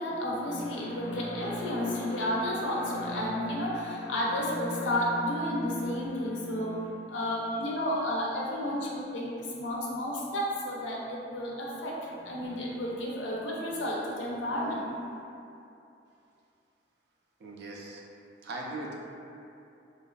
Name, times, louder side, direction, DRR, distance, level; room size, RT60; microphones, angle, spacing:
voice 1, 0.0-15.0, left 1 dB, 90° left, -4 dB, 0.5 m, -32 dB
voice 2, 17.4-18.0 18.4-18.9, right 2 dB, 60° right, -2 dB, 0.4 m, -40 dB
2.5 x 2.3 x 2.2 m, 2.7 s
head